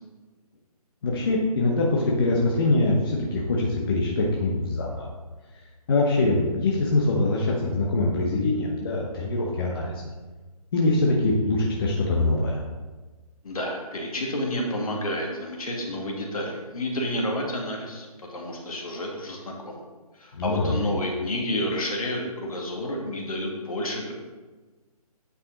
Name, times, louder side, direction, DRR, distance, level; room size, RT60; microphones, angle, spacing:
voice 1, 1.0-5.1 5.9-10.0 10.7-12.6 20.3-20.8, left 2 dB, 35° left, -3 dB, 1.1 m, -23 dB
voice 2, 13.4-19.8 20.1-24.1, left 1 dB, 65° left, 0 dB, 2.1 m, -30 dB
8.8 x 5.5 x 4.0 m, 1.3 s
hypercardioid pair, 165°, 20 cm